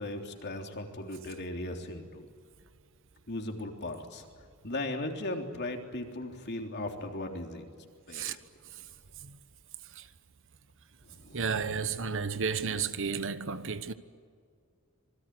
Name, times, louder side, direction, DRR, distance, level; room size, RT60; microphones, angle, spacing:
voice 1, 0.0-2.3 3.3-4.3 4.6-7.7 8.1-8.4 11.1-11.4, left 1 dB, 50° left, 3.4 m, -37 dB
voice 2, 11.3-13.9, right 6 dB, 60° right, 1.2 m, -33 dB
26.5 x 21.0 x 9.6 m
head